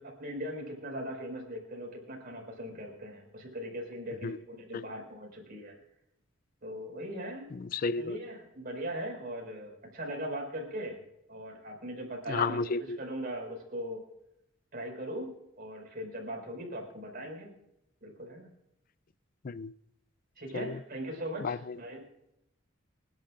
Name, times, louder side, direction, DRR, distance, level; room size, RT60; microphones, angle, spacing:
voice 1, 0.0-5.8 6.6-7.5 8.0-11.0 11.3-12.6 13.0-14.0 14.7-17.5 18.0-18.5 20.4-22.0, equal, 45° right, 0 dB, 5.3 m, -39 dB
voice 2, 7.5-8.2 12.3-13.0 19.4-19.7 20.5-20.8 21.4-21.8, left 4 dB, 40° left, 18 dB, 0.4 m, -32 dB
28.5 x 11.5 x 2.6 m, 0.80 s
head